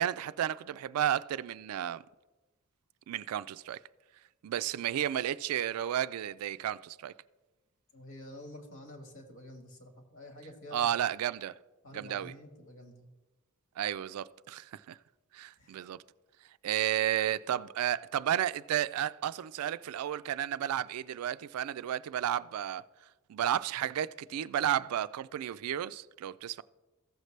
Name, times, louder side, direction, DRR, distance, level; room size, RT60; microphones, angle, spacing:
voice 1, 0.0-2.0 3.1-3.8 4.4-7.1 10.7-11.5 11.9-12.3 13.8-15.0 15.3-16.0 16.6-22.8 23.3-26.6, right 10 dB, 85° right, 0.3 m, -32 dB
voice 2, 7.9-10.9 11.8-13.1 15.6-15.8, left 1 dB, 65° left, 1.5 m, -49 dB
15.0 x 6.6 x 3.2 m
head